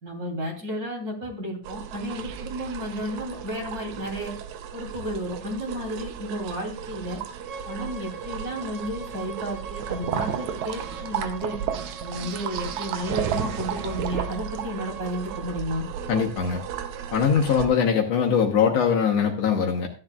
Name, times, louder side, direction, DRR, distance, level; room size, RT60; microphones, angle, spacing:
voice 1, 0.0-4.3 4.7-7.2 7.6-11.6 12.0-15.9, equal, 30° right, 0 dB, 3.3 m, -32 dB
sound 1, 1.6-17.7, right 8 dB, 75° right, 2.1 m, -34 dB
Bowed string instrument, 7.4-15.5, right 5 dB, 55° right, 3.0 m, -42 dB
voice 2, 16.1-16.6 17.1-19.9, left 7 dB, 65° left, 1 dB, 2.1 m, -22 dB
14.5 x 10.5 x 2.4 m, 0.37 s
omnidirectional pair, 3.4 m